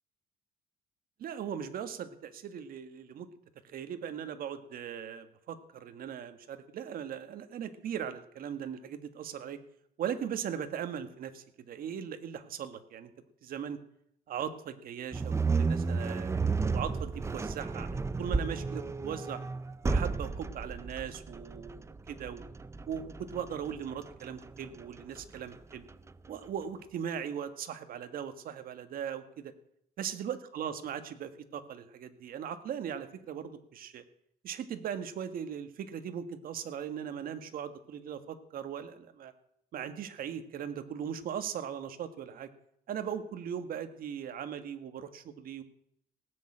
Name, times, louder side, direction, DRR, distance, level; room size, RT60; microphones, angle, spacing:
voice 1, 1.2-3.3 3.6-9.6 10.0-13.1 13.4-13.8 14.3-17.9 18.2-19.4 19.8-22.4 22.9-25.9 26.3-29.5 30.0-34.0 34.4-39.3 39.7-42.5 42.9-45.6, right 8 dB, 60° right, 9 dB, 1.6 m, -39 dB
sound 1, 15.1-26.3, right 4 dB, 15° right, 0.6 m, -33 dB
17.5 x 6.8 x 8.7 m, 0.72 s
cardioid pair, 110°, 17 cm